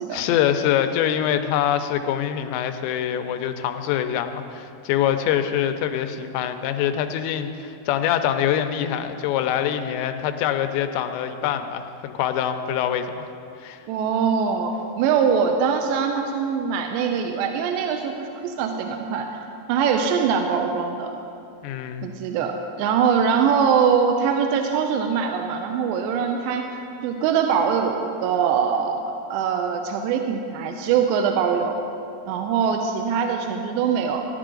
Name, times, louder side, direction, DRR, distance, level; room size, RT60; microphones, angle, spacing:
voice 1, 0.1-13.3 13.6-13.8 21.6-22.1, left 10 dB, 85° left, 8 dB, 2.9 m, -24 dB
voice 2, 13.9-19.3 19.7-21.1 22.0-26.7 27.0-31.8 32.3-34.2, right 6 dB, 85° right, 4 dB, 2.8 m, -23 dB
15.5 x 10.5 x 3.8 m, 2.6 s
omnidirectional pair, 5.1 m